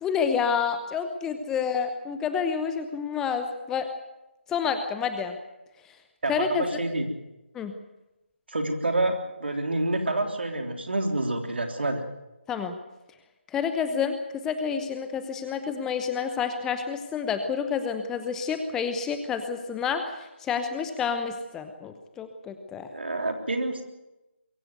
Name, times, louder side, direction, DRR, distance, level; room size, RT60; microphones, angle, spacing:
voice 1, 0.0-3.9 4.5-5.4 6.3-6.6 7.5-7.7 12.5-12.7 13.5-14.2 14.4-22.9, left 6 dB, 5° left, 7 dB, 0.9 m, -29 dB
voice 2, 6.2-7.1 8.5-12.0 22.9-23.8, right 2 dB, 60° right, 5 dB, 3.4 m, -28 dB
23.0 x 15.0 x 9.4 m, 0.99 s
figure-of-eight pair, 150°, 7 cm